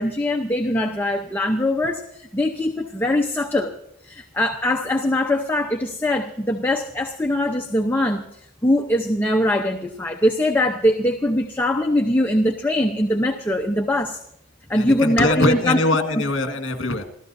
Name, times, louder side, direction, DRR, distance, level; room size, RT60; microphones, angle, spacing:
voice 1, 0.0-3.7 4.0-14.2 14.7-15.8, left 1 dB, 10° left, 2 dB, 0.8 m, -22 dB
voice 2, 14.7-17.0, left 2 dB, 60° left, 6 dB, 1.8 m, -22 dB
27.5 x 14.0 x 2.7 m, 0.78 s
head